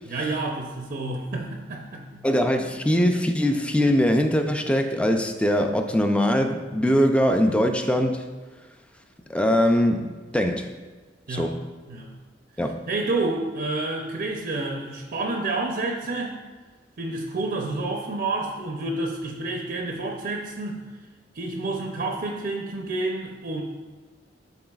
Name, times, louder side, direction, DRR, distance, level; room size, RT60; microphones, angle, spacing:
voice 1, 0.1-2.3 11.3-11.6 11.9-12.1 12.9-16.4 17.0-20.9 21.3-23.6, right 2 dB, 55° right, 2 dB, 0.6 m, -29 dB
voice 2, 2.2-8.3 9.3-10.7 11.3-11.6 12.6-12.8, equal, 5° left, 5 dB, 0.4 m, -22 dB
11.5 x 4.0 x 2.3 m, 1.3 s
head